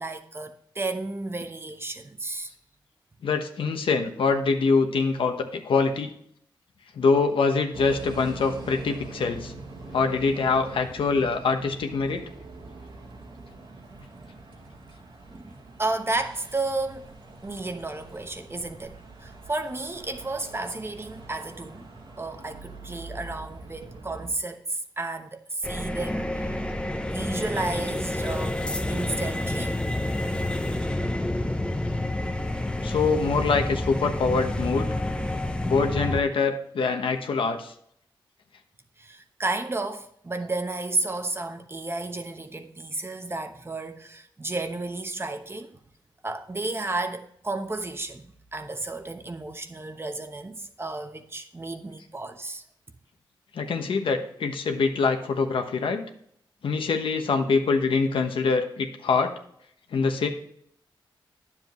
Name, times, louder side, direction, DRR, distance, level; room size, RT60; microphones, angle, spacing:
voice 1, 0.0-2.5 15.3-17.1 17.4-21.9 22.2-26.3 27.1-29.8 39.0-45.8 46.2-52.6, right 2 dB, 30° right, 1.0 m, -32 dB
voice 2, 3.2-6.1 7.0-9.5 9.9-12.2 32.8-34.9 35.6-37.7 53.5-56.0 56.6-59.3 59.9-60.3, left 4 dB, 80° left, 1.1 m, -24 dB
sound 1, 7.7-24.3, right 3 dB, 70° right, 1.9 m, -43 dB
sound 2, 25.6-36.2, left 1 dB, 10° left, 0.7 m, -29 dB
9.5 x 7.5 x 3.1 m
cardioid pair, 75°, 9 cm